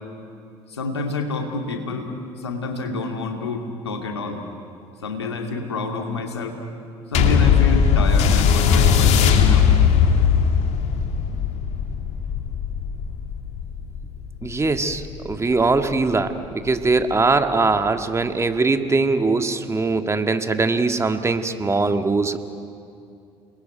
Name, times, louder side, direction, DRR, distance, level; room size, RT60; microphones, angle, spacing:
voice 1, 0.7-2.1 2.4-4.4 5.0-6.6 7.1-9.7, left 3 dB, 90° left, 3 dB, 2.5 m, -28 dB
sound 1, 7.1-15.9 16.7-16.8, left 7 dB, 55° left, 2.4 m, -19 dB
voice 2, 14.4-22.4, right 3 dB, 20° right, 7 dB, 1.9 m, -21 dB
29.5 x 21.0 x 9.4 m, 2.6 s
hypercardioid pair, 60°, 13 cm